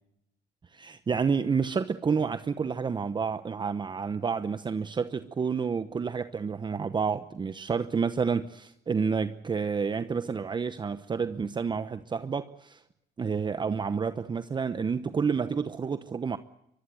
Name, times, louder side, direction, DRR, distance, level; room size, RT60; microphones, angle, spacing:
voice 1, 0.7-12.8 13.2-16.4, right 5 dB, 25° right, 1.0 m, -29 dB
24.0 x 21.5 x 7.8 m
cardioid pair, 110°, 17 cm